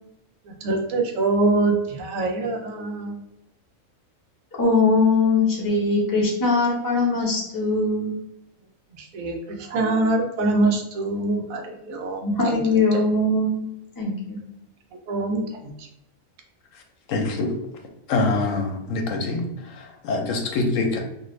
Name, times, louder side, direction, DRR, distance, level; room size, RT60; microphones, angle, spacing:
voice 1, 0.6-3.1 9.1-12.6 12.9-13.0 15.1-15.4, right 2 dB, 90° right, 3 dB, 1.0 m, -24 dB
voice 2, 4.6-8.1 12.4-13.6 14.0-14.4, left 3 dB, 20° left, -3 dB, 0.6 m, -21 dB
voice 3, 17.1-17.5 18.1-19.4 19.8-21.0, left 3 dB, 75° left, 3 dB, 1.0 m, -24 dB
2.6 x 2.5 x 3.1 m, 0.83 s
omnidirectional pair, 1.4 m